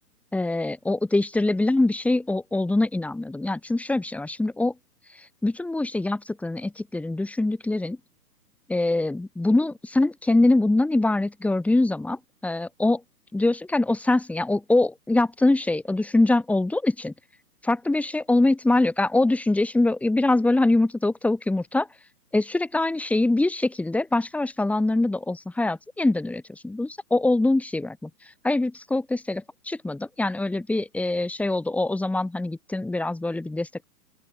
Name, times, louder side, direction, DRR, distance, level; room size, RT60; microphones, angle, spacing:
voice 1, 0.3-4.7 5.2-8.0 8.7-13.0 13.3-17.1 17.6-21.9 22.3-28.1 28.4-33.8, left 2 dB, 5° left, 2.2 m, -23 dB
open air
hypercardioid pair, 140°, 49 cm